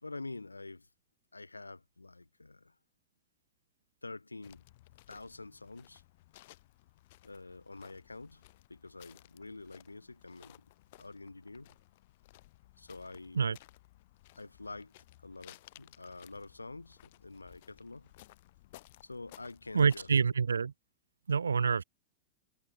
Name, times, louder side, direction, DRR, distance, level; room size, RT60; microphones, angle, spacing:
voice 1, 0.0-0.9 1.3-2.8 4.0-4.6 5.1-6.0 7.2-8.4 8.7-10.7 11.0-11.8 12.8-13.4 14.3-14.9 15.2-18.1 19.0-20.2, left 3 dB, 80° left, 1.1 m, -47 dB
sound 1, 4.4-20.2, left 18 dB, 50° left, 3.4 m, -59 dB
voice 2, 19.7-20.7 21.3-21.8, right 5 dB, 75° right, 0.5 m, -27 dB
figure-of-eight pair, 90°, 0 cm